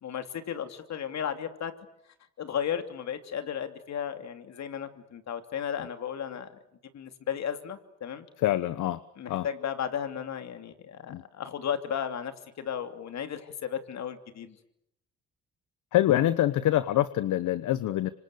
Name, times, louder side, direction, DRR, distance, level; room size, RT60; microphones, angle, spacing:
voice 1, 0.0-1.7 2.4-6.5 6.9-8.3 9.2-14.6, left 8 dB, 65° left, 8 dB, 2.9 m, -34 dB
voice 2, 8.4-9.0 9.3-9.5 11.1-11.2 15.9-18.1, left 13 dB, 80° left, 15 dB, 1.0 m, -25 dB
26.5 x 26.0 x 8.3 m, 0.76 s
cardioid pair, 90°, 30 cm